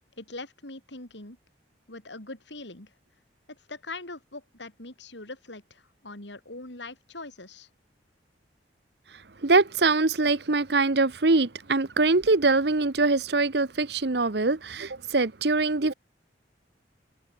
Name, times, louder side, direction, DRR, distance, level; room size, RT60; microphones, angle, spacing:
voice 1, 0.2-1.4 1.9-2.9 3.7-7.7, left 2 dB, 75° left, 4.8 m, -42 dB
voice 2, 9.4-15.9, right 3 dB, 60° right, 1.1 m, -23 dB
head